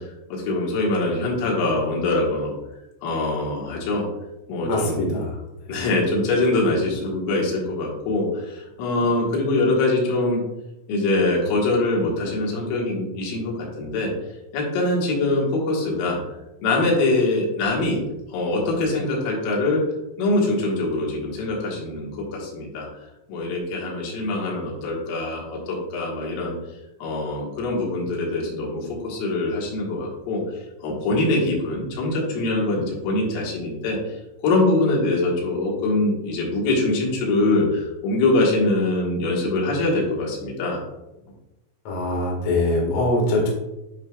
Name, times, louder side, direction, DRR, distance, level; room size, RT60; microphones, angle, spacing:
voice 1, 0.0-2.6 3.0-4.1 4.5-5.2 5.7-10.4 10.9-14.1 14.5-16.2 16.6-18.0 18.3-19.8 20.2-22.9 23.3-26.6 27.0-30.4 30.8-34.2 34.4-40.8, left 2 dB, 90° left, -3 dB, 4.3 m, -23 dB
voice 2, 4.6-5.4 5.7-5.8 41.8-43.5, left 1 dB, 55° left, -3 dB, 1.8 m, -23 dB
11.0 x 4.7 x 2.3 m, 0.95 s
omnidirectional pair, 5.7 m